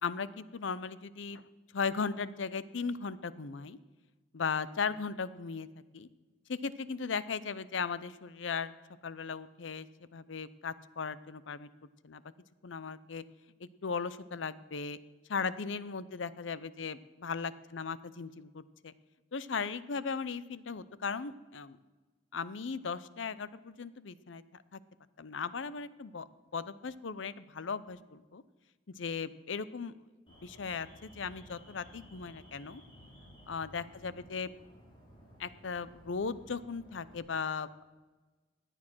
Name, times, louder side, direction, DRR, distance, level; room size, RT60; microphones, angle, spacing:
voice 1, 0.0-1.4 1.7-3.8 4.3-5.7 5.9-6.1 6.5-8.7 9.0-9.9 10.1-11.7 12.0-12.2 12.6-13.2 13.6-15.0 15.3-18.9 19.3-21.8 22.3-24.8 25.2-26.3 26.5-28.4 29.0-29.9 30.4-32.8 33.5-34.5 35.4-37.8, left 5 dB, 80° left, 16 dB, 0.6 m, -37 dB
Alarm, 30.3-37.2, equal, 25° left, 4.6 m, -56 dB
17.0 x 10.0 x 6.2 m, 1.3 s
head